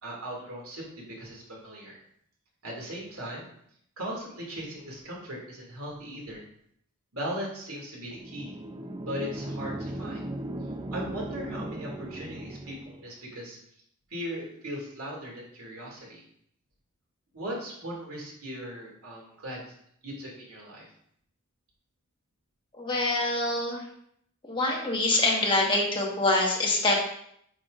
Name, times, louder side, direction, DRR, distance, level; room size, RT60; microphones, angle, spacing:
voice 1, 0.0-2.0 2.6-3.5 4.0-6.4 7.1-8.5 9.0-10.2 10.9-13.6 14.1-16.2 17.3-19.6 20.0-20.9, equal, 80° right, -2 dB, 2.3 m, -38 dB
sound 1, 8.1-13.1, right 1 dB, 20° right, 0.5 m, -37 dB
voice 2, 22.7-23.8 24.5-27.0, left 2 dB, 25° left, -2 dB, 1.4 m, -25 dB
8.6 x 5.9 x 2.5 m, 0.69 s
head